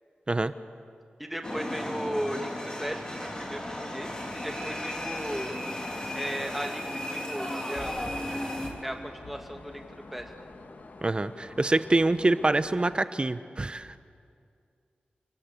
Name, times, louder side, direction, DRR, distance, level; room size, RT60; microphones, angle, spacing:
voice 1, 1.2-5.6 6.1-8.0 8.8-10.3, equal, 5° right, 4 dB, 2.5 m, -36 dB
sound 1, 1.4-8.7, left 1 dB, 25° left, 3.8 m, -35 dB
sound 2, 2.8-13.0, left 3 dB, 60° left, 1.9 m, -47 dB
sound 3, 7.7-11.1 11.6-11.7, left 2 dB, 80° left, 6.0 m, -47 dB
voice 2, 11.0-13.9, right 2 dB, 30° right, 13 dB, 0.9 m, -25 dB
29.0 x 18.5 x 8.5 m, 2.3 s
wide cardioid pair, 90°, 3 cm